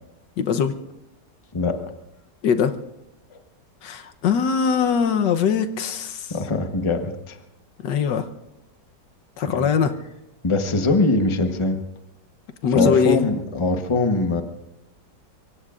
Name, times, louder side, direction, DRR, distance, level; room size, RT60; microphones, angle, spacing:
voice 1, 0.4-0.7 2.4-2.8 3.8-6.3 7.8-8.3 9.4-9.9 12.6-13.3, left 6 dB, 85° left, 8 dB, 1.5 m, -21 dB
voice 2, 1.5-1.9 3.3-3.4 6.3-7.4 9.5-9.7 10.4-11.8 12.7-14.4, left 3 dB, 20° left, 6 dB, 0.9 m, -22 dB
24.5 x 23.5 x 2.5 m, 0.93 s
omnidirectional pair, 1.9 m